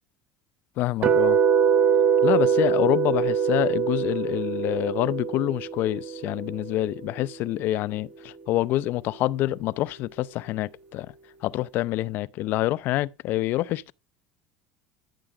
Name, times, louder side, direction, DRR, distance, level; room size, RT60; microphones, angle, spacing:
voice 1, 0.8-1.4 2.2-11.1 11.4-13.9, left 15 dB, 55° left, 0.5 m, -27 dB
sound 1, 1.0-7.1, right 7 dB, 45° right, 1.3 m, -23 dB
13.0 x 6.8 x 4.8 m
supercardioid pair, 115°, 4 cm